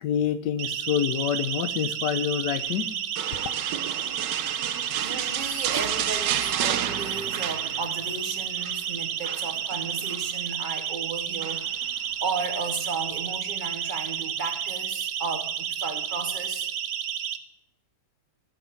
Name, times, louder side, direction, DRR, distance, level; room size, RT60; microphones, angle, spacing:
voice 1, 0.0-2.9, left 9 dB, 80° left, 1.2 m, -27 dB
Siren, 0.6-17.4, right 8 dB, 60° right, 0.9 m, -31 dB
sound 1, 3.2-8.2 8.4-8.8 9.2-10.3 11.4-11.9 12.4-12.5, right 10 dB, 90° right, 1.3 m, -31 dB
voice 2, 5.0-16.7, right 4 dB, 30° right, 1.2 m, -34 dB
14.0 x 5.9 x 6.9 m
omnidirectional pair, 1.9 m